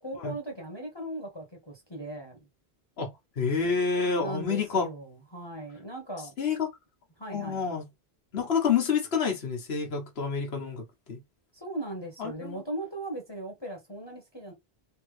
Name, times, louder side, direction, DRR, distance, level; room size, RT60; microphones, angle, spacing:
voice 1, 0.0-2.4 4.2-6.3 7.2-7.7 11.5-14.5, right 1 dB, 25° left, 1.2 m, -38 dB
voice 2, 3.0-4.9 6.4-6.7 7.3-7.8 8.3-11.2 12.2-12.6, left 5 dB, 75° left, 1.3 m, -28 dB
3.5 x 2.9 x 3.1 m
omnidirectional pair, 1.1 m